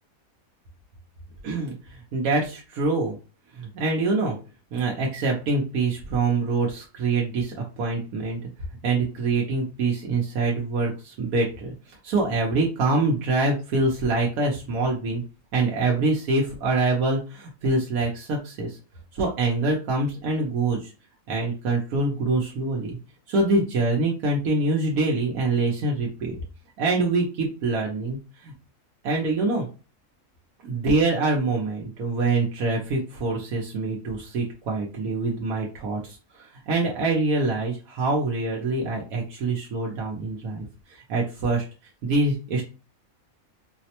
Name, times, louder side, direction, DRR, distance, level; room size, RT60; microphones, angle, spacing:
voice 1, 1.4-3.2 3.6-4.4 4.7-8.4 8.8-15.2 15.5-18.8 19.1-20.9 21.3-23.0 23.3-26.3 26.8-28.5 29.0-29.7 30.6-41.6 42.0-42.6, right 3 dB, 85° right, -1 dB, 1.2 m, -25 dB
4.1 x 2.1 x 2.8 m, 0.33 s
omnidirectional pair, 1.5 m